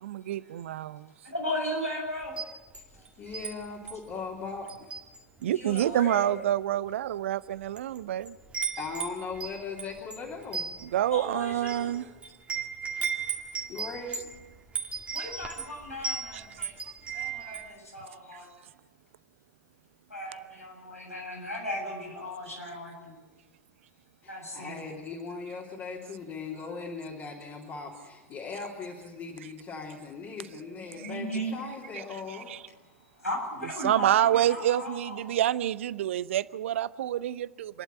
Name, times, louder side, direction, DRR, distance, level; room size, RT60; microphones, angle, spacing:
voice 1, 0.0-1.1 5.4-8.4 10.8-12.0 16.3-16.7 31.9-32.0 32.5-32.6 33.8-37.8, right 12 dB, 60° right, 0.6 m, -27 dB
voice 2, 1.2-2.3 5.5-6.4 11.1-11.9 15.1-16.8 17.1-18.5 20.1-23.2 24.3-24.8 30.8-31.6 33.1-35.4, equal, 90° left, 7.7 m, -36 dB
Wind chime, 2.2-3.5 3.9-4.1 4.7-5.4 5.7-6.0 6.7-6.8 7.5-8.0 8.2-17.7, right 6 dB, 15° right, 2.2 m, -36 dB
voice 3, 3.2-4.9 8.8-10.7 13.7-14.3 24.2-32.5, left 4 dB, 30° left, 3.5 m, -39 dB
28.0 x 11.5 x 9.2 m
figure-of-eight pair, 90°, 8 cm